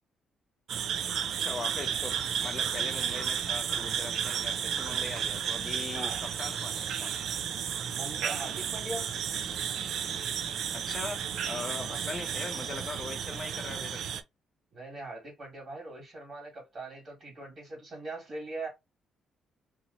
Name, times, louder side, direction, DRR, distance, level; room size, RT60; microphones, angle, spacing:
sound 1, 0.7-14.2, right 8 dB, 65° right, 0.4 m, -33 dB
voice 1, 1.4-7.1 10.7-14.0, left 3 dB, 30° left, 0.5 m, -40 dB
voice 2, 5.9-6.2 7.9-9.0 11.8-12.1 14.7-18.7, right 2 dB, 40° right, 1.6 m, -41 dB
2.9 x 2.7 x 2.6 m
cardioid pair, 150°, 0 cm